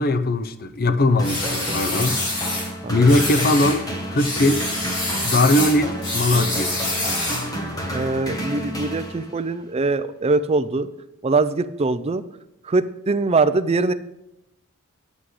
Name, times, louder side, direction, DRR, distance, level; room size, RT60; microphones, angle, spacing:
voice 1, 0.0-4.7 5.2-6.7, left 2 dB, 40° left, 0.6 m, -20 dB
sound 1, 1.2-2.7 3.1-3.8 4.2-7.5, left 2 dB, 70° left, 3.2 m, -26 dB
sound 2, 1.2-9.6, equal, 15° left, 1.4 m, -30 dB
voice 2, 7.9-10.9 11.2-12.2 12.6-13.9, right 3 dB, 25° right, 0.4 m, -22 dB
9.7 x 8.1 x 4.9 m
head